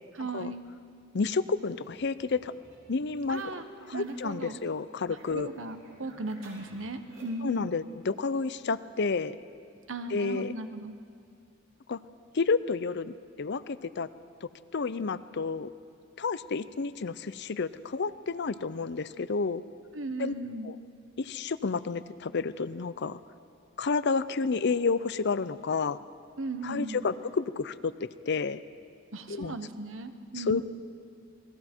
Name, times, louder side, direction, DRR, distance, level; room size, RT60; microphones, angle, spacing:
voice 1, 0.1-0.6 3.3-3.7 3.9-4.6 5.1-7.8 9.9-10.9 19.9-20.8 26.4-27.1 29.1-30.6, right 2 dB, 75° right, 9 dB, 1.2 m, -37 dB
voice 2, 1.1-2.5 2.9-3.4 3.9-5.5 7.4-9.4 10.1-10.5 11.9-12.0 12.3-14.1 14.4-15.7 16.2-19.6 20.2-20.3 20.6-20.8 21.2-23.2 23.8-26.0 26.6-27.9 28.3-28.6 29.3-29.6 30.4-30.6, left 4 dB, 60° left, 15 dB, 0.6 m, -30 dB
sound 1, 1.8-4.5 4.7-7.5, right 1 dB, 90° right, 6.5 m, -54 dB
28.0 x 20.5 x 4.5 m, 2.5 s
head